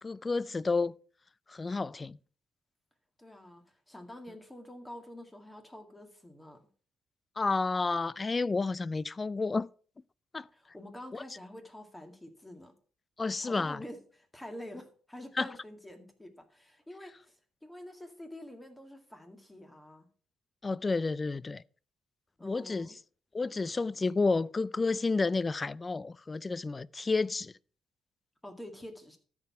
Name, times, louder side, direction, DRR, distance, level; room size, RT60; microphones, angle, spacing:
voice 1, 0.0-0.9 1.5-2.2 7.4-9.7 10.3-10.5 11.1-11.2 13.2-13.8 15.4-15.5 20.6-21.6 22.4-22.9 23.3-27.5, left 3 dB, 25° left, 0.3 m, -30 dB
voice 2, 3.2-6.6 10.5-12.7 13.4-20.1 22.4-23.0 28.4-29.2, left 1 dB, 10° left, 2.0 m, -47 dB
13.0 x 4.8 x 5.7 m
cardioid pair, 90°, 0 cm